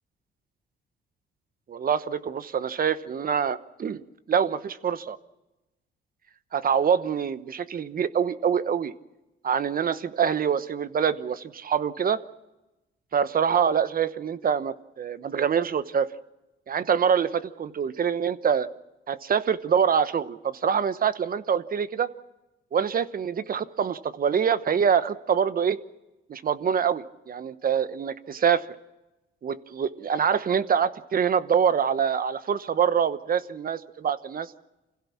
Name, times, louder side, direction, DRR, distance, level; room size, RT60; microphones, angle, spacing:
voice 1, 1.7-4.0 4.3-5.2 6.5-8.9 9.4-12.2 13.1-16.1 16.7-18.7 19.1-22.1 22.7-25.8 26.3-28.6 29.4-34.5, right 7 dB, 45° right, 14 dB, 1.0 m, -25 dB
26.0 x 16.5 x 7.3 m, 1.0 s
cardioid pair, 90°, 20 cm